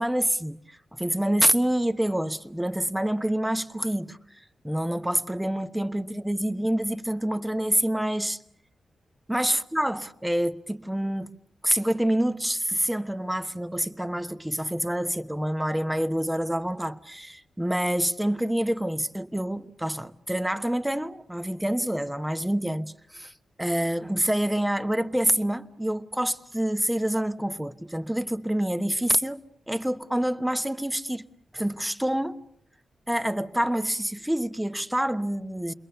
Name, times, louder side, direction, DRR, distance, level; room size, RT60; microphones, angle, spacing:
voice 1, 0.0-4.2 4.6-8.4 9.3-11.3 11.6-23.3 23.6-31.3 31.5-32.4 33.1-35.7, right 1 dB, 5° right, 1.1 m, -27 dB
29.5 x 22.0 x 6.8 m
cardioid pair, 80°, 0 cm